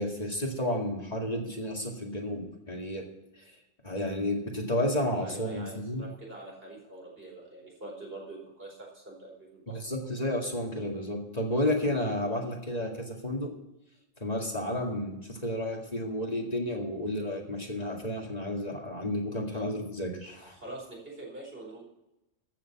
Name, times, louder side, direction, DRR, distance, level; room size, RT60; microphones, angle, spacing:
voice 1, 0.0-3.0 3.8-6.1 9.8-13.5 14.2-20.6, left 1 dB, 30° left, 0 dB, 2.2 m, -31 dB
voice 2, 5.2-9.8 19.5-19.7 20.5-21.8, right 2 dB, 50° right, -2 dB, 4.8 m, -44 dB
14.5 x 6.8 x 7.1 m, 0.91 s
omnidirectional pair, 1.3 m